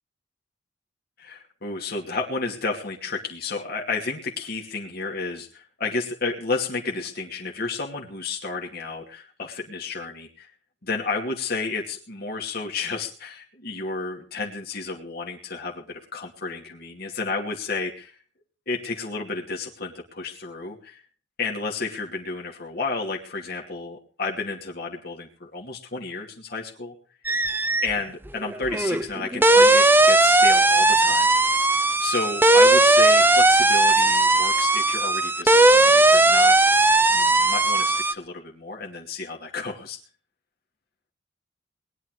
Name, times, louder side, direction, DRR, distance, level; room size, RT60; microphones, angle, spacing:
voice 1, 1.2-10.5 10.8-18.2 18.7-21.0 21.4-26.9 27.8-36.6 37.1-40.0, left 4 dB, 55° left, 0 dB, 2.5 m, -32 dB
sound 1, 27.2-27.9 28.3-38.1, right 2 dB, 10° right, 0.7 m, -17 dB
20.5 x 11.0 x 4.9 m, 0.41 s
head